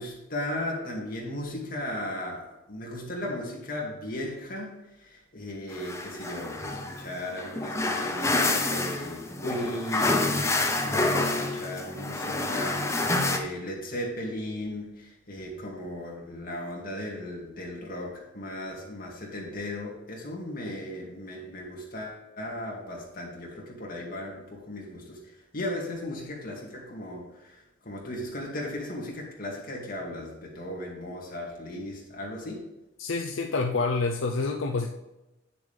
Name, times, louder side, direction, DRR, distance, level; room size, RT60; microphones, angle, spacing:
voice 1, 0.0-32.6, left 1 dB, 50° left, -2 dB, 2.3 m, -36 dB
sound 1, 5.7-13.4, left 2 dB, 15° left, 0.7 m, -28 dB
voice 2, 33.0-34.9, left 3 dB, 80° left, 3 dB, 0.5 m, -27 dB
9.0 x 6.8 x 3.4 m, 0.99 s
head